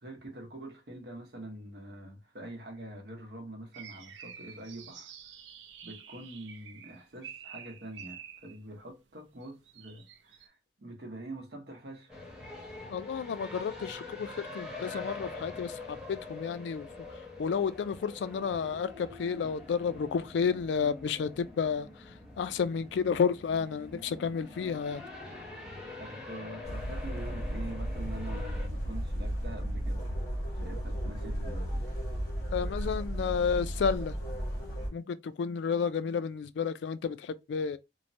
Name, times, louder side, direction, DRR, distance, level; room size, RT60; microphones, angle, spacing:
voice 1, 0.0-5.1 5.8-12.1 26.0-30.1 30.6-31.9, right 1 dB, 65° right, 0.8 m, -45 dB
sound 1, 3.7-8.6 9.4-10.5, right 8 dB, 90° right, 0.4 m, -49 dB
sound 2, 12.1-28.7, left 3 dB, 5° right, 0.7 m, -45 dB
voice 2, 12.9-16.9 17.4-21.9 22.4-25.0 32.5-34.1 34.9-37.8, left 6 dB, 80° left, 0.3 m, -31 dB
sound 3, 26.6-34.9, equal, 20° left, 1.6 m, -34 dB
3.0 x 2.1 x 2.5 m
head